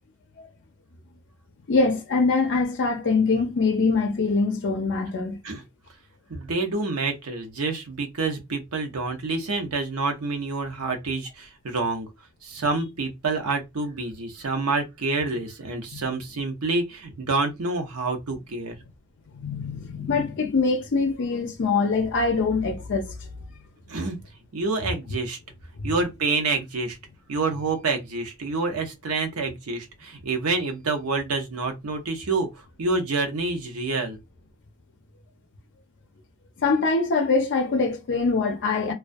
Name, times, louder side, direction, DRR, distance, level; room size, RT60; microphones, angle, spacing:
voice 1, 1.7-5.4 15.9-16.0 19.3-23.1 25.8-25.9 36.6-38.9, left 4 dB, 55° left, 0.5 m, -23 dB
voice 2, 6.3-12.1 12.4-18.8 23.9-24.2 24.5-25.4 25.8-27.0 27.3-32.5 32.8-34.2, right 3 dB, 70° right, 0.7 m, -27 dB
2.3 x 2.2 x 2.5 m
head